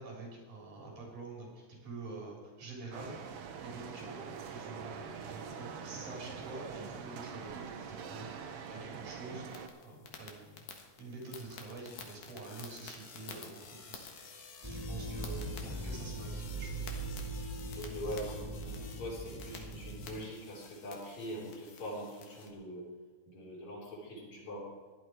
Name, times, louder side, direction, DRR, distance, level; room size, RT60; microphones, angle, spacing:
voice 1, 0.0-9.5 9.8-10.6 11.0-16.9, right 3 dB, 80° right, -2 dB, 5.6 m, -47 dB
sound 1, 2.9-9.7, right 6 dB, 60° right, 1.7 m, -44 dB
sound 2, 9.5-22.5, left 5 dB, 80° left, 3.0 m, -51 dB
sound 3, 14.6-20.2, right 2 dB, 10° right, 2.1 m, -40 dB
voice 2, 17.8-22.9 23.3-24.7, equal, 65° left, -4 dB, 5.2 m, -43 dB
16.5 x 11.5 x 4.7 m, 1.3 s
omnidirectional pair, 3.6 m